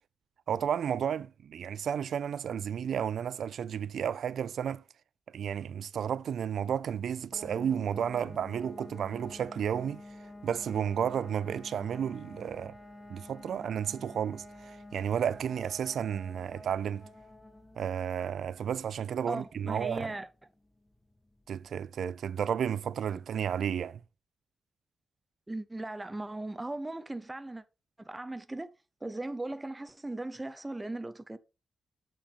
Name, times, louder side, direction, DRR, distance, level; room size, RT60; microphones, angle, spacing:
voice 1, 0.5-4.8 5.3-10.0 10.4-12.7 13.1-17.1 17.8-20.1 21.5-24.0, right 8 dB, 90° right, 0.3 m, -32 dB
sound 1, 7.3-21.9, left 1 dB, 10° left, 0.9 m, -50 dB
voice 2, 19.3-20.3 25.5-27.6 28.0-28.7 29.0-31.4, right 2 dB, 15° right, 0.5 m, -38 dB
6.9 x 5.9 x 4.0 m
wide cardioid pair, 180°, 0 cm